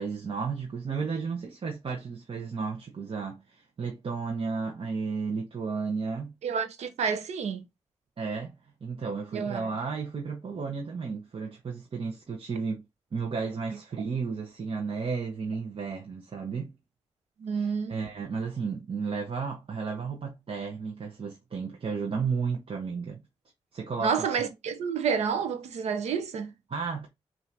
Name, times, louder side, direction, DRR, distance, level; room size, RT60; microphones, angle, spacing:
voice 1, 0.0-6.3 8.2-8.5 8.8-12.8 13.1-16.7 17.5-23.2 23.7-24.3 26.7-27.1, right 5 dB, 55° right, 1.1 m, -33 dB
voice 2, 6.4-7.6 9.3-9.7 17.4-18.0 24.0-26.5, right 6 dB, 85° right, 0.8 m, -29 dB
5.6 x 2.8 x 2.7 m
cardioid pair, 50°, 11 cm